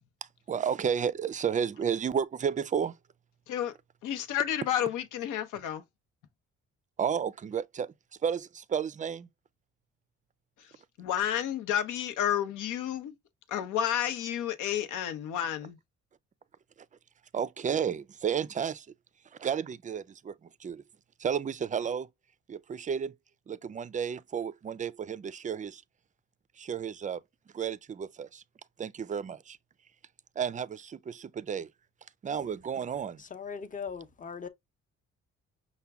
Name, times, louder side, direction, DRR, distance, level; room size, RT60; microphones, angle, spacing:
voice 1, 0.5-2.9 7.0-7.9 8.2-9.3 17.3-18.9 19.4-20.8 21.2-22.1 22.5-23.1 23.5-25.8 26.6-27.2 27.5-28.4 28.8-29.6 30.4-31.7 32.2-33.2, right 7 dB, 25° right, 0.4 m, -32 dB
voice 2, 4.0-5.8 10.6-13.1 13.5-15.8, left 10 dB, 90° left, 0.8 m, -31 dB
voice 3, 33.2-34.5, left 6 dB, 25° left, 0.7 m, -39 dB
5.7 x 2.2 x 3.5 m
cardioid pair, 90°, 30 cm